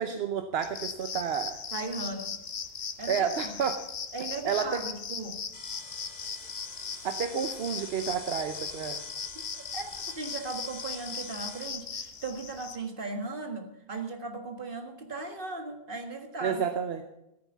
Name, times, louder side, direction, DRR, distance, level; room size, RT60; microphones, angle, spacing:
voice 1, 0.0-1.6 3.1-3.8 4.4-4.7 7.0-9.0 16.4-17.0, right 7 dB, 75° right, 7 dB, 1.1 m, -30 dB
sound 1, 0.6-12.8, left 6 dB, 75° left, 1.3 m, -38 dB
voice 2, 1.7-2.4 3.0-3.6 4.1-5.4 9.3-16.6, right 3 dB, 60° right, 6 dB, 1.8 m, -37 dB
sound 2, 5.5-11.7, left 2 dB, 45° left, 2.4 m, -48 dB
14.5 x 8.8 x 7.1 m, 0.89 s
omnidirectional pair, 1.0 m